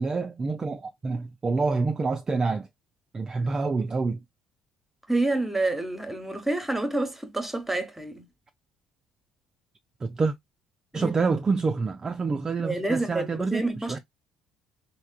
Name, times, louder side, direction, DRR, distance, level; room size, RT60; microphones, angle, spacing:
voice 1, 0.0-2.7 3.1-4.2 10.0-10.3 10.9-13.6 13.9-14.0, right 4 dB, 30° right, 0.4 m, -27 dB
voice 2, 5.1-8.3 10.9-11.1 12.6-14.0, right 2 dB, 10° right, 1.0 m, -28 dB
3.4 x 2.1 x 2.3 m
hypercardioid pair, 60°, 2 cm